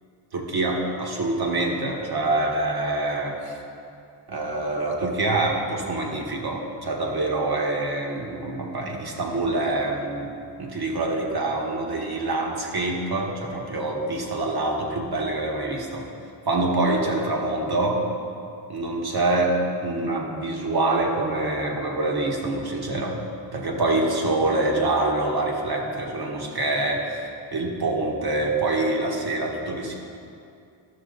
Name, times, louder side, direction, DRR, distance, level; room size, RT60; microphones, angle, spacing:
voice 1, 0.3-3.6 4.3-10.3 10.6-16.1 16.4-18.0 18.7-23.2 23.5-29.9, right 2 dB, 55° right, 0 dB, 1.6 m, -25 dB
13.0 x 6.2 x 4.0 m, 2.5 s
cardioid pair, 70°, 45 cm